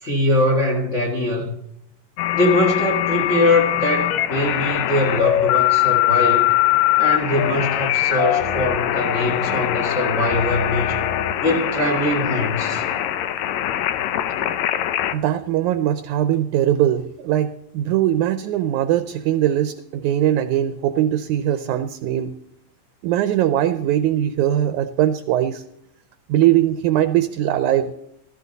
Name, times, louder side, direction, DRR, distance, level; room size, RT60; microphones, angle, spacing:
voice 1, 0.0-1.5 2.3-6.5 7.0-11.0 11.4-12.9 14.4-14.5, left 1 dB, 35° left, 1.1 m, -22 dB
sound 1, 2.2-15.1, left 13 dB, 75° left, 1.7 m, -22 dB
voice 2, 15.1-22.3 23.0-25.6 26.3-27.9, right 12 dB, 75° right, 1.9 m, -20 dB
15.0 x 14.5 x 4.0 m
omnidirectional pair, 3.9 m